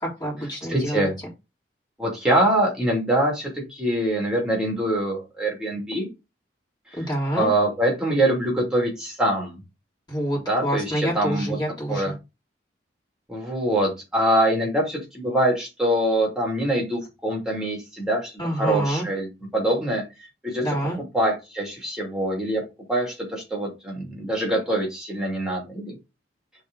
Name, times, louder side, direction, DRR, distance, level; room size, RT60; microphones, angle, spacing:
voice 1, 0.0-1.1 6.9-7.5 10.1-12.1 18.4-19.1 20.6-21.0, equal, 25° left, -4 dB, 3.6 m, -27 dB
voice 2, 0.7-1.1 2.0-6.1 7.3-9.6 10.5-11.6 11.9-12.1 13.3-20.0 20.4-20.6 21.1-22.6 22.9-26.0, right 1 dB, 5° right, -2 dB, 2.6 m, -24 dB
5.1 x 3.7 x 5.3 m, 0.25 s
head